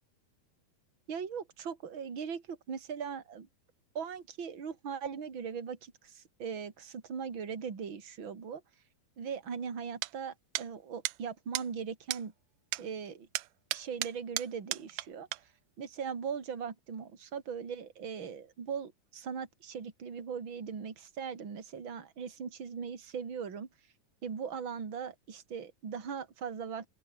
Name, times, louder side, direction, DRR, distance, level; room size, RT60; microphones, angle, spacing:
voice 1, 1.1-3.5 4.0-8.6 9.2-12.3 12.8-13.3 13.7-15.5 15.8-23.7 24.2-26.9, right 6 dB, 35° right, 3.5 m, -39 dB
sound 1, 10.0-10.1 10.6-10.7 11.1-11.2 11.6-11.7 12.1-12.2 12.7-12.8 13.4-15.1 15.3-15.4, right 18 dB, 75° right, 2.1 m, -35 dB
open air
omnidirectional pair, 4.0 m